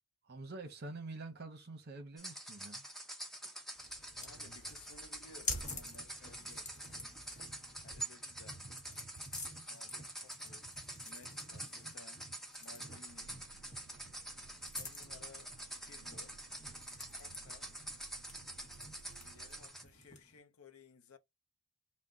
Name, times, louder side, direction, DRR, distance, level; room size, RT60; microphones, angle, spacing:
voice 1, 0.2-2.9, right 3 dB, 50° right, 0.9 m, -47 dB
sound 1, 2.2-19.8, right 1 dB, ahead, 0.6 m, -47 dB
sound 2, 3.7-20.4, left 2 dB, 35° left, 1.2 m, -49 dB
voice 2, 4.1-6.8 7.8-8.6 9.5-10.7 11.0-12.3 12.6-13.4 14.8-16.4 17.1-17.8 19.2-21.2, left 4 dB, 80° left, 0.6 m, -59 dB
sound 3, 13.1-19.7, right 6 dB, 90° right, 0.4 m, -61 dB
3.6 x 2.1 x 3.8 m
head